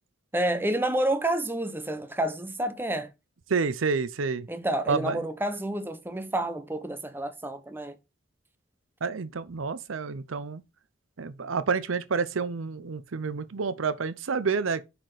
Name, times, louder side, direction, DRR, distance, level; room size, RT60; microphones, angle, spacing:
voice 1, 0.3-3.1 4.5-8.0, right 1 dB, 10° right, 0.7 m, -29 dB
voice 2, 3.5-4.5 4.9-5.2 9.0-10.6 11.2-14.8, right 5 dB, 85° right, 0.6 m, -29 dB
6.0 x 4.3 x 4.9 m
head